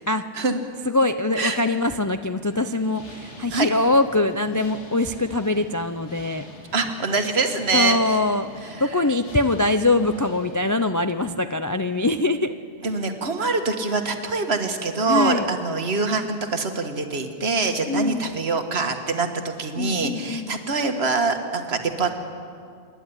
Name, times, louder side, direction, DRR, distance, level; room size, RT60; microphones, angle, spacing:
voice 1, 0.9-6.4 7.7-8.5 8.8-12.5 15.1-15.5 17.9-18.3 19.8-20.5, left 2 dB, 30° left, 9 dB, 0.3 m, -23 dB
sound 1, 2.5-10.7, left 2 dB, 80° left, 2.4 m, -44 dB
voice 2, 6.7-8.2 8.8-8.9 12.8-22.1, right 3 dB, 65° right, 6 dB, 1.7 m, -24 dB
27.0 x 11.0 x 9.8 m, 2.3 s
omnidirectional pair, 1.2 m